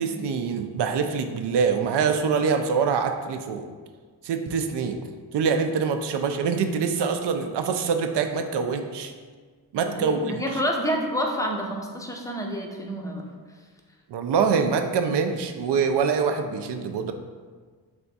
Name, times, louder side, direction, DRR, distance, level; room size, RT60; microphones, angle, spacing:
voice 1, 0.0-3.7 4.2-5.0 5.3-9.1 9.7-10.6 14.1-17.1, right 6 dB, 75° right, 6 dB, 0.5 m, -25 dB
voice 2, 9.9-13.2, equal, 10° left, 0 dB, 0.4 m, -29 dB
3.4 x 3.4 x 4.0 m, 1.5 s
wide cardioid pair, 135°, 42 cm